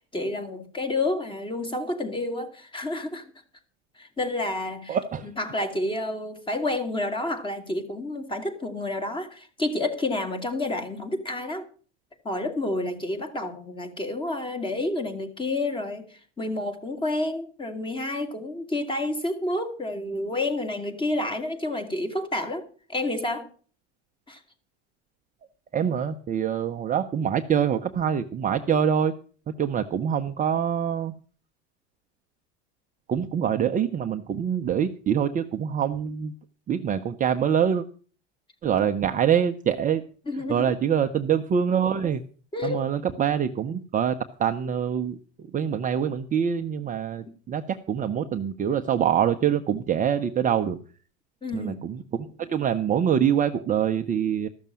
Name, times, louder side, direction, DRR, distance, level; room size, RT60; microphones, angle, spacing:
voice 1, 0.1-3.3 4.0-5.0 5.2-11.7 12.2-22.6 22.9-23.5 24.3-24.4 40.3-40.7 42.5-42.8 51.4-51.8, left 2 dB, 15° left, 7 dB, 2.4 m, -29 dB
voice 2, 4.9-5.3 25.7-29.1 29.6-31.1 33.1-36.3 36.7-37.8 38.6-40.0 40.5-42.2 42.6-44.1 44.4-50.8 51.5-54.5, right 8 dB, 25° right, 6 dB, 0.7 m, -25 dB
14.0 x 6.7 x 7.5 m, 0.41 s
supercardioid pair, 125°, 34 cm